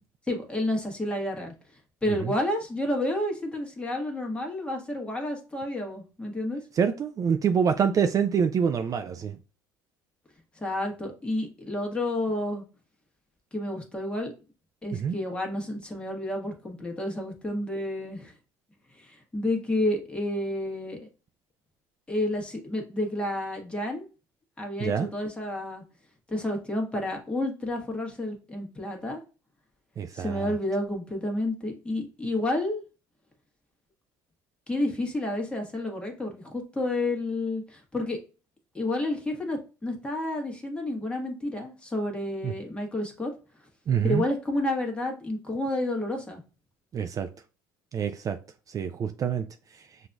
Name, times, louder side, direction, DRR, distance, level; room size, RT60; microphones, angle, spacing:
voice 1, 0.3-1.5 2.0-6.6 10.5-12.6 13.5-14.3 14.8-18.3 18.9-21.1 22.1-24.1 24.6-25.8 26.3-29.2 30.1-32.8 34.7-38.2 38.7-43.3 44.0-46.4, left 1 dB, 10° left, 1.3 m, -30 dB
voice 2, 6.7-9.4 14.9-15.2 24.8-25.1 30.0-30.5 42.4-42.5 43.9-44.2 46.9-47.3 47.9-48.4 48.7-49.5, right 7 dB, 40° right, 0.4 m, -26 dB
5.9 x 2.6 x 2.3 m
supercardioid pair, 90°, 9 cm